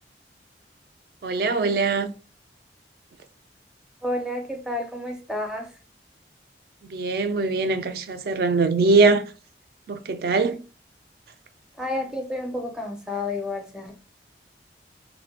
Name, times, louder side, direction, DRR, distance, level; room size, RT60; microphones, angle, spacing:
voice 1, 1.2-2.1 6.8-9.2 9.9-10.6, right 3 dB, 55° right, 0.3 m, -22 dB
voice 2, 4.0-5.7 11.8-13.9, left 2 dB, 5° right, 0.5 m, -30 dB
2.4 x 2.2 x 3.4 m
head